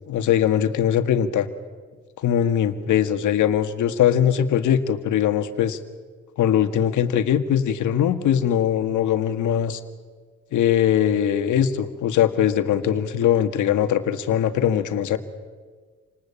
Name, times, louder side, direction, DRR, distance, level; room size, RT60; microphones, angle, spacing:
voice 1, 0.1-1.5 2.2-5.8 6.4-9.8 10.5-15.2, left 9 dB, 75° left, 9 dB, 1.9 m, -21 dB
28.0 x 19.5 x 8.7 m, 1.5 s
cardioid pair, 90°, 30 cm